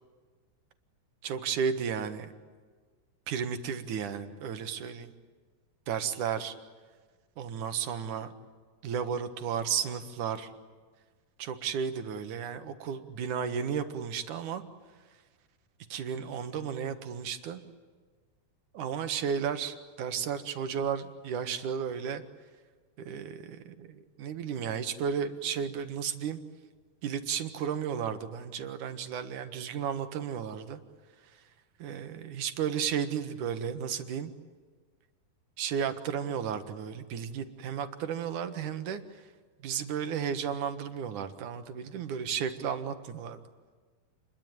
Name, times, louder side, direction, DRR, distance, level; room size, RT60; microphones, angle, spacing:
voice 1, 1.2-2.3 3.3-5.1 5.9-6.5 7.4-8.3 8.8-10.5 11.4-14.6 15.9-17.6 18.7-22.2 23.1-26.4 27.0-30.8 31.8-34.3 35.6-39.0 39.6-43.4, right 7 dB, 60° right, 8 dB, 2.6 m, -33 dB
29.0 x 22.5 x 9.2 m, 1.5 s
omnidirectional pair, 4.7 m